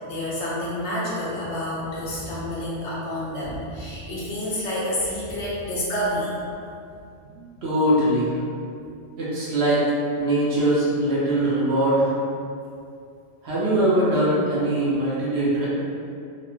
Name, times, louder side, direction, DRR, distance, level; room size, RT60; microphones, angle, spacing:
voice 1, 0.0-6.6, left 1 dB, 70° left, -7 dB, 0.9 m, -29 dB
voice 2, 7.3-8.4 9.2-9.9 10.2-12.1 13.4-15.7, right 1 dB, 65° right, -8 dB, 0.9 m, -22 dB
3.1 x 2.0 x 2.3 m, 2.4 s
omnidirectional pair, 1.2 m